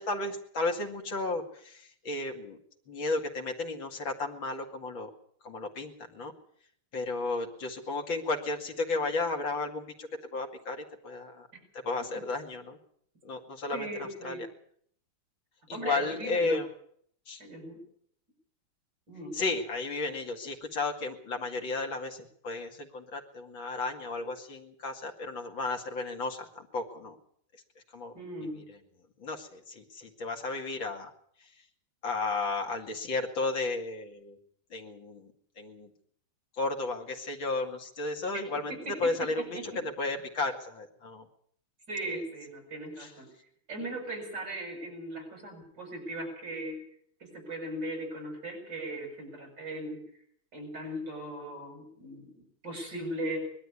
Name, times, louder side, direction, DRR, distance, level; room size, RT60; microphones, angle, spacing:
voice 1, 0.0-2.6 2.9-5.1 5.4-6.3 6.9-11.5 11.8-12.8 13.2-14.4 15.7-16.7 17.3-17.4 19.3-27.2 27.9-28.1 29.2-31.1 32.0-34.4 34.7-35.3 35.6-35.9 36.6-38.7 39.0-39.5 40.0-41.2 43.0-43.1, left 3 dB, 65° left, 3 dB, 3.1 m, -33 dB
voice 2, 13.7-14.4 15.7-16.6 17.4-17.8 19.1-19.4 28.1-28.6 38.3-38.4 38.7-39.8 40.1-40.2 41.9-43.3 43.7-46.8 47.2-50.0 50.5-53.4, right 1 dB, 55° right, 3 dB, 7.7 m, -38 dB
21.0 x 12.5 x 9.8 m, 0.65 s
omnidirectional pair, 2.3 m